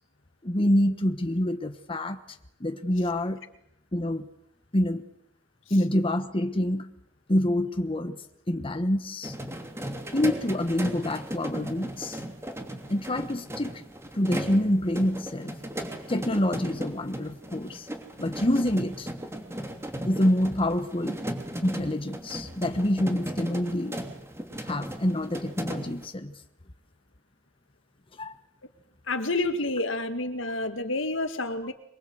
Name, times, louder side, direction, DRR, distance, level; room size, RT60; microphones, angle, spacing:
voice 1, 0.4-2.2 2.6-3.4 3.9-4.3 4.7-5.1 5.7-6.9 7.3-9.3 10.1-12.2 12.9-13.7 14.1-15.6 16.1-17.9 18.2-19.1 20.0-21.2 21.6-24.0 24.6-26.3 28.2-28.3, left 1 dB, 25° left, 8 dB, 1.2 m, -26 dB
sound 1, 9.2-26.1, right 1 dB, 15° right, 3.0 m, -37 dB
voice 2, 29.1-31.7, left 2 dB, 70° left, 9 dB, 2.1 m, -29 dB
23.5 x 23.0 x 7.9 m, 0.77 s
head